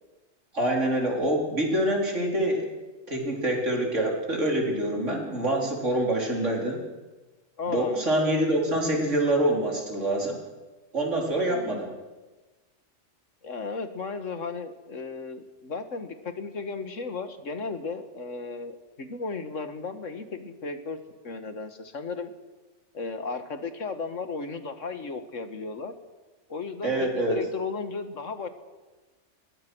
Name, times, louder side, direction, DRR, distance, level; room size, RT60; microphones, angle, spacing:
voice 1, 0.5-2.7 3.1-6.8 7.7-10.4 10.9-11.9 26.8-27.4, right 1 dB, 75° right, 0 dB, 4.4 m, -25 dB
voice 2, 7.6-8.0 11.3-11.8 13.4-21.0 21.2-22.3 22.9-25.9 26.5-28.5, left 4 dB, 85° left, 9 dB, 2.0 m, -35 dB
22.5 x 20.5 x 6.3 m, 1.2 s
omnidirectional pair, 1.3 m